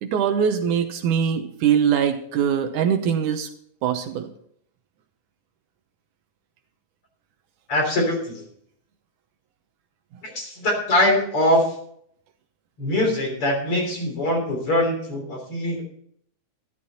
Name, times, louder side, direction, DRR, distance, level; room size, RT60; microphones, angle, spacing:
voice 1, 0.0-3.5 3.8-4.3, right 8 dB, 75° right, 7 dB, 2.4 m, -22 dB
voice 2, 7.7-8.4 10.2-11.8 12.8-15.8, left 1 dB, 40° left, 2 dB, 4.1 m, -22 dB
12.5 x 12.0 x 4.2 m, 0.66 s
omnidirectional pair, 3.8 m